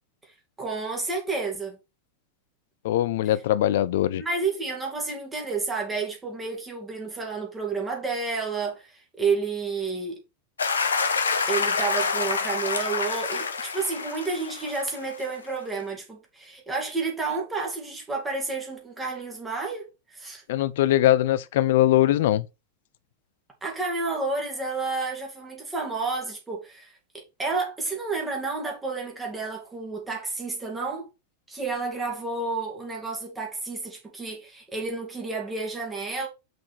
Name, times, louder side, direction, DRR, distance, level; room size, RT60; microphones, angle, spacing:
voice 1, 0.6-1.8 4.2-10.2 11.5-19.9 20.1-20.4 23.6-31.1 31.5-36.3, right 4 dB, 15° right, 2.6 m, -30 dB
voice 2, 2.8-4.2 20.5-22.5, left 13 dB, 55° left, 0.5 m, -21 dB
sound 1, 10.6-15.3, left 5 dB, 70° left, 1.0 m, -27 dB
6.1 x 4.6 x 4.6 m
figure-of-eight pair, 90°, 0 cm